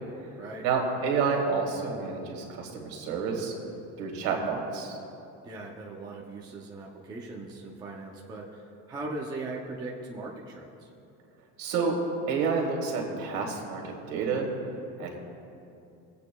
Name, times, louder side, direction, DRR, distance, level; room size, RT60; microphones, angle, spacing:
voice 1, 0.6-3.5 4.0-5.0 11.6-12.0 12.3-14.5 15.0-15.2, right 5 dB, 60° right, 1 dB, 2.0 m, -29 dB
voice 2, 5.4-10.9, right 2 dB, 10° right, -2 dB, 0.5 m, -39 dB
24.5 x 8.3 x 2.3 m, 2.7 s
cardioid pair, 170°, 35 cm